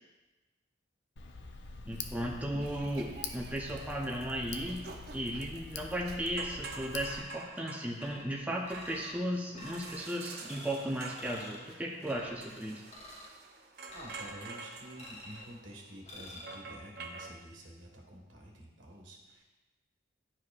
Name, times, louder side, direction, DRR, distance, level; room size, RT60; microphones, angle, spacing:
Tick, 1.2-7.2, left 4 dB, 60° left, 0.5 m, -45 dB
voice 1, 1.9-4.8 5.1-12.8, equal, 10° right, -2 dB, 0.6 m, -36 dB
voice 2, 2.5-3.0 13.9-19.4, equal, 85° right, -1 dB, 1.5 m, -49 dB
sound 1, 2.6-17.3, right 4 dB, 55° right, 0.7 m, -48 dB
sound 2, 7.0-7.6 8.0-9.2 9.5-10.0 10.5-10.9 11.2-11.7 12.1-12.5 12.9-13.3 13.9-14.5 15.0-15.5 16.1-16.5, left 1 dB, 35° left, 1.1 m, -49 dB
11.0 x 4.7 x 2.4 m, 1.1 s
head